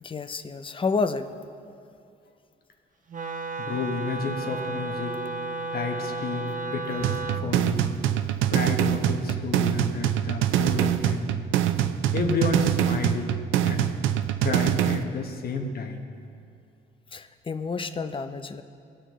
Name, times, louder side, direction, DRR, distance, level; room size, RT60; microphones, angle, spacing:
voice 1, 0.0-1.3 17.1-18.6, left 4 dB, 25° left, 10 dB, 0.5 m, -29 dB
Wind instrument woodwind instrument, 3.1-7.5, right 3 dB, 40° right, 0.7 m, -33 dB
voice 2, 3.6-5.2 5.7-7.8 8.4-11.7 12.1-13.9 14.4-16.0, left 4 dB, 50° left, 4 dB, 1.1 m, -31 dB
sound 1, 7.0-15.0, right 11 dB, 80° right, 0.4 m, -24 dB
18.0 x 6.4 x 3.1 m, 2.4 s
cardioid pair, 90°, 20 cm